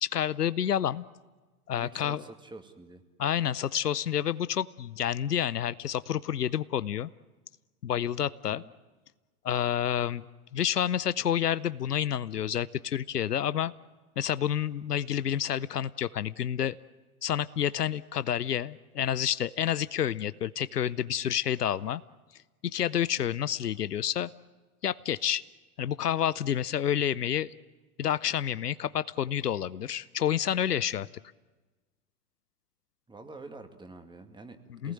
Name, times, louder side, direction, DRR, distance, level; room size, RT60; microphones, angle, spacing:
voice 1, 0.0-1.0 1.7-2.2 3.2-7.1 7.8-8.6 9.4-10.3 10.5-13.7 14.2-16.8 17.2-22.0 22.6-24.3 24.8-25.4 25.8-27.5 28.0-31.1 34.8-34.9, left 10 dB, 80° left, 17 dB, 0.7 m, -29 dB
voice 2, 1.8-3.0 8.4-8.7 23.2-23.4 33.1-34.9, right 2 dB, 10° right, 6 dB, 2.1 m, -47 dB
28.0 x 19.0 x 8.9 m, 1.3 s
figure-of-eight pair, 95°, 46 cm